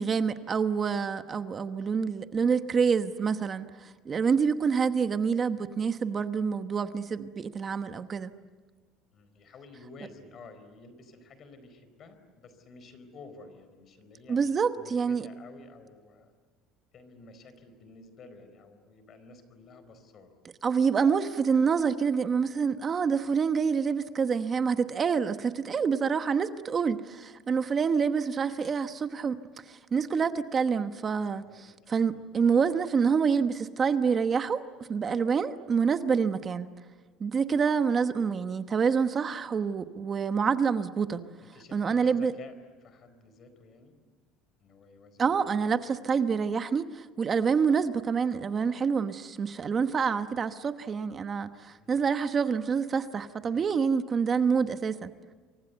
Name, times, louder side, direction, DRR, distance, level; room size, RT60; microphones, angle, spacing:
voice 1, 0.0-8.3 14.3-15.3 20.6-29.4 29.7-34.6 34.9-36.7 37.2-41.2 41.7-42.3 45.2-55.1, right 6 dB, 25° right, 10 dB, 1.1 m, -27 dB
voice 2, 9.1-14.4 14.8-16.3 16.9-20.3 31.1-31.6 31.8-32.2 41.4-42.5 42.8-43.9 44.6-45.7 51.8-52.0 53.4-53.7, left 3 dB, 40° left, 10 dB, 4.6 m, -52 dB
28.5 x 24.0 x 8.2 m, 1.4 s
cardioid pair, 145°, 0 cm